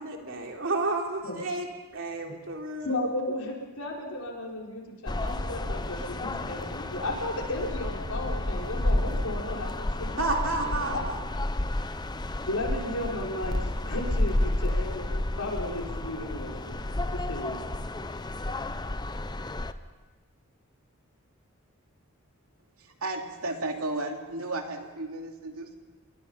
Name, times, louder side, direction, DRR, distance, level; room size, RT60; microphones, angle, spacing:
voice 1, 0.0-1.7 1.9-2.9 10.2-11.2, right 2 dB, 60° right, 1 dB, 3.3 m, -31 dB
voice 2, 2.8-10.5 10.9-11.0 12.5-13.5 13.8-16.8 17.3-17.6, left 1 dB, 85° left, -1 dB, 5.0 m, -34 dB
sound 1, 5.1-19.7, left 1 dB, 20° left, 0.7 m, -31 dB
voice 3, 22.8-25.7, right 2 dB, 85° right, 3 dB, 2.7 m, -34 dB
28.0 x 22.0 x 5.7 m, 1.3 s
head